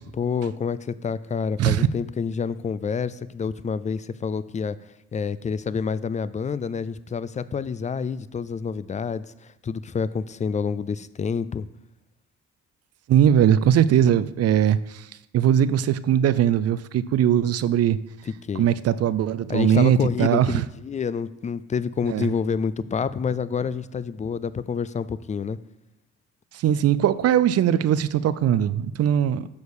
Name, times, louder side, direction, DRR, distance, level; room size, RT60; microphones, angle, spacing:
voice 1, 0.2-4.8 5.1-11.6 18.3-18.7 19.5-25.6, left 6 dB, 25° left, 16 dB, 0.3 m, -28 dB
voice 2, 13.1-15.1 15.3-18.0 18.6-20.6 22.1-22.3 26.5-29.5, right 10 dB, 55° right, 16 dB, 0.5 m, -20 dB
7.1 x 6.3 x 4.8 m, 0.96 s
cardioid pair, 90°, 30 cm